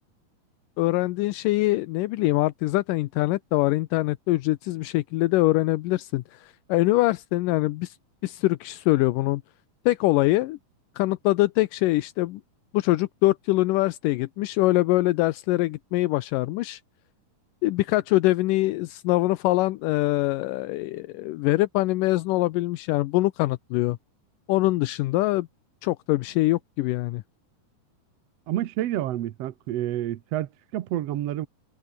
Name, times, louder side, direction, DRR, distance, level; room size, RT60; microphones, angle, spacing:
voice 1, 0.8-8.0 8.2-9.4 9.9-10.6 11.0-12.4 12.7-16.8 17.6-24.0 24.5-25.5 25.8-27.2, left 18 dB, 80° left, 2.3 m, -23 dB
voice 2, 28.5-31.5, right 13 dB, 65° right, 1.7 m, -29 dB
omnidirectional pair, 3.8 m